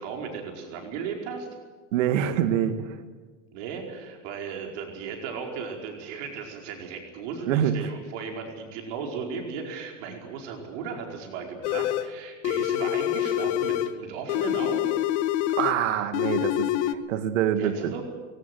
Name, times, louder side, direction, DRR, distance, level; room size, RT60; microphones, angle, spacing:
voice 1, 0.0-1.5 3.5-14.9 17.6-18.0, right 6 dB, 60° right, 2 dB, 5.0 m, -36 dB
voice 2, 1.9-3.0 7.5-7.9 15.5-17.9, right 9 dB, 80° right, 9 dB, 2.0 m, -25 dB
sound 1, 11.6-12.1 12.4-14.0 14.3-15.8 16.1-16.9, left 12 dB, 65° left, 1.3 m, -26 dB
20.5 x 17.5 x 9.4 m, 1.4 s
supercardioid pair, 135°, 38 cm